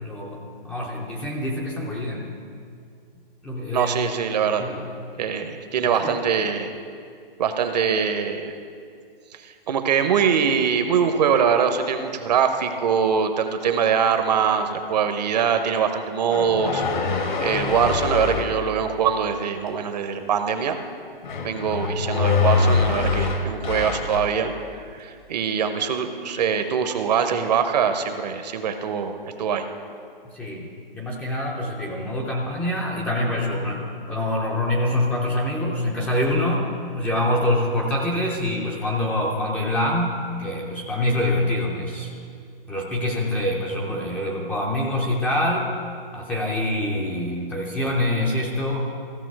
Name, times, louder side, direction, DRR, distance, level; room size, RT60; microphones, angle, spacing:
voice 1, 0.0-2.3 3.4-3.9 4.6-4.9 5.4-5.6 5.8-6.2 30.2-30.7 30.9-36.7 36.9-42.1 42.7-45.7 46.1-48.9, left 1 dB, 5° left, -3 dB, 0.5 m, -25 dB
voice 2, 3.7-4.7 5.2-6.7 7.4-8.5 9.3-20.8 21.4-29.7, right 7 dB, 45° right, 8 dB, 0.8 m, -23 dB
sound 1, 16.3-18.6 21.2-24.4, left 4 dB, 55° left, 1.3 m, -24 dB
15.0 x 5.9 x 4.7 m, 2.2 s
hypercardioid pair, 145°, 29 cm